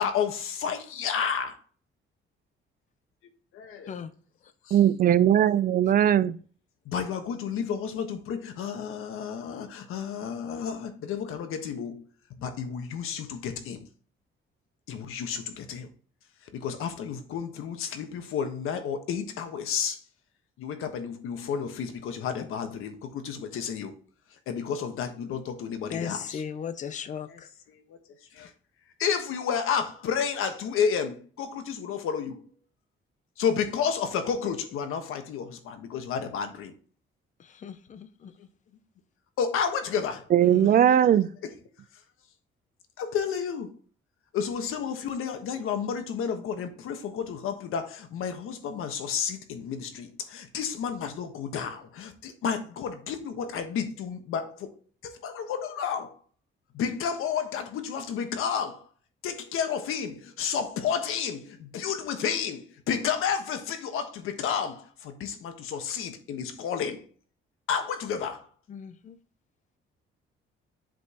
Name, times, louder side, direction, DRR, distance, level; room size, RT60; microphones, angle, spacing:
voice 1, 0.0-1.6 3.6-3.9 4.7-4.8 6.8-12.0 12.4-13.9 14.9-15.9 16.5-20.0 20.6-23.9 24.5-26.4 27.3-27.4 27.9-28.0 28.3-28.5 29.0-32.5 33.4-36.7 38.4-38.5 39.4-40.3 41.1-41.2 41.4-41.5 43.0-43.8 44.3-54.7 55.0-56.2 56.7-58.8 59.2-67.1 67.7-68.5, left 7 dB, 85° left, 1.3 m, -31 dB
voice 2, 4.7-6.4 40.3-41.3, right 10 dB, 45° right, 0.4 m, -20 dB
voice 3, 25.9-27.5 37.4-38.3 40.4-41.0 68.7-69.2, left 7 dB, 35° left, 0.6 m, -37 dB
7.7 x 5.3 x 2.9 m
cardioid pair, 150°, 21 cm